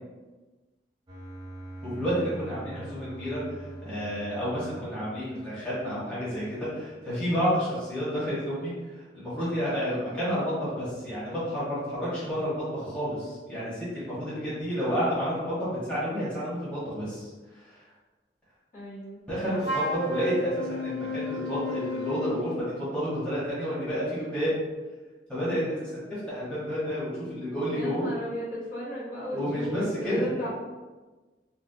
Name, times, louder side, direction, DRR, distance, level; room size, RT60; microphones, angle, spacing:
sound 1, 1.1-7.1, right 2 dB, 25° right, 0.7 m, -44 dB
voice 1, 1.8-17.8 19.3-24.5 25.3-28.0 29.3-30.5, equal, 5° left, -11 dB, 1.2 m, -30 dB
voice 2, 18.7-19.2 27.7-30.5, equal, 50° left, -10 dB, 1.4 m, -35 dB
Wind instrument woodwind instrument, 19.6-22.5, left 1 dB, 75° left, 0.7 m, -32 dB
4.0 x 2.2 x 2.7 m, 1.2 s
head